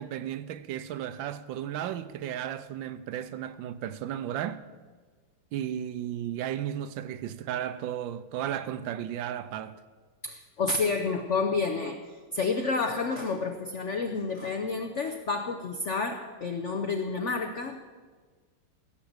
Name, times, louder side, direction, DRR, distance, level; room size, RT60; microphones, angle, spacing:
voice 1, 0.0-4.6 5.5-9.8, right 10 dB, 75° right, 1.2 m, -34 dB
voice 2, 10.2-12.0 12.3-17.8, left 4 dB, 85° left, 0.6 m, -29 dB
16.5 x 6.1 x 8.0 m
omnidirectional pair, 2.4 m